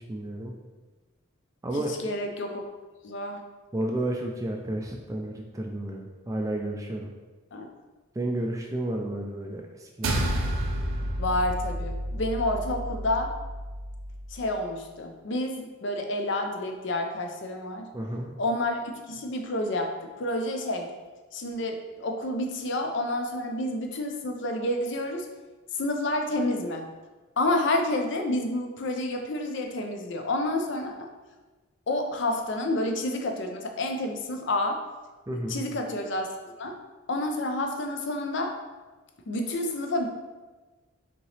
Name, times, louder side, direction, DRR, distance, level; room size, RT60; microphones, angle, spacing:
voice 1, 0.1-0.5 1.6-1.9 3.7-7.1 8.2-10.3 17.9-18.3 35.3-35.7, right 1 dB, 15° right, 2 dB, 0.3 m, -31 dB
voice 2, 2.0-2.7 3.0-3.4 7.5-7.7 11.2-13.3 14.3-17.9 18.4-19.9 20.2-20.9 21.3-25.3 25.8-26.9 27.4-31.1 31.9-34.8 35.5-36.8 37.1-38.5 39.3-40.1, left 1 dB, 55° left, 4 dB, 0.5 m, -29 dB
sound 1, 10.0-14.6, right 1 dB, 70° right, 0.6 m, -31 dB
5.2 x 2.9 x 3.2 m, 1.2 s
head